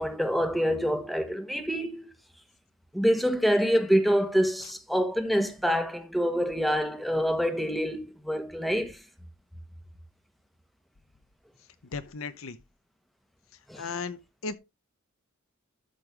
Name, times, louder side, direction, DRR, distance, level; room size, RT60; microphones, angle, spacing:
voice 1, 0.0-2.1 2.9-9.0 13.7-13.9, equal, ahead, 1.3 m, -26 dB
voice 2, 11.9-12.6 13.7-14.2 14.4-14.6, left 4 dB, 85° left, 0.9 m, -35 dB
13.0 x 5.5 x 3.4 m
head